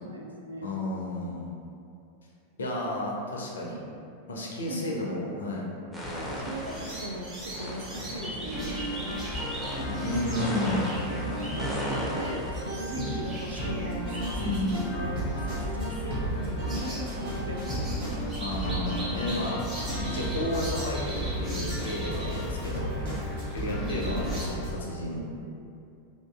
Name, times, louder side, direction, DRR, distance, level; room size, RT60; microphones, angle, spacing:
voice 1, 0.0-0.7 4.7-5.2 6.4-8.7 10.2-10.6 11.2-11.7 11.9-18.3 25.0-25.7, right 1 dB, 75° right, -1 dB, 0.3 m, -39 dB
voice 2, 0.6-1.5 2.6-3.8 4.3-5.7 10.0-10.9 14.4-14.8 18.4-19.6 20.1-22.9 23.5-25.3, left 1 dB, 70° left, -2 dB, 0.4 m, -32 dB
sound 1, 5.9-7.1 7.5-12.5, equal, 5° left, 0.5 m, -36 dB
sound 2, 6.0-24.4, left 1 dB, 20° right, 1.0 m, -37 dB
sound 3, 8.5-24.7, right 1 dB, 60° right, 1.2 m, -35 dB
2.6 x 2.5 x 2.3 m, 2.5 s
figure-of-eight pair, 90°, 0 cm